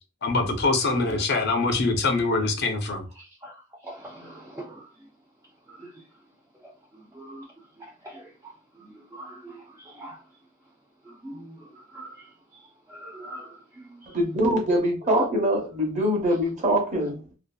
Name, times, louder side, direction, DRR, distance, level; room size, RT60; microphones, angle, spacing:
voice 1, 0.2-3.1, left 3 dB, 55° left, 0.5 m, -24 dB
voice 2, 0.8-1.2 3.1-5.1 5.7-6.1 6.6-10.2 11.0-14.2, right 1 dB, 15° right, 0.4 m, -44 dB
voice 3, 14.1-17.2, equal, 35° right, 0.9 m, -23 dB
2.6 x 2.4 x 2.3 m
head